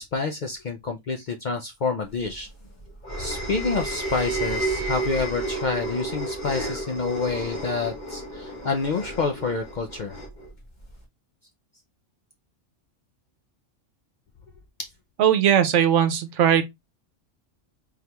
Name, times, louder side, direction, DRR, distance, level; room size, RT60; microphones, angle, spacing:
voice 1, 0.0-2.5 3.2-10.2 14.8-14.9, left 4 dB, 55° left, 0.5 m, -28 dB
sound 1, 2.2-11.0, right 1 dB, 35° left, 1.5 m, -32 dB
sound 2, 3.5-6.8, right 5 dB, 10° left, 1.5 m, -43 dB
voice 2, 15.2-16.6, right 9 dB, 70° right, 1.0 m, -19 dB
3.9 x 3.4 x 2.9 m
omnidirectional pair, 1.3 m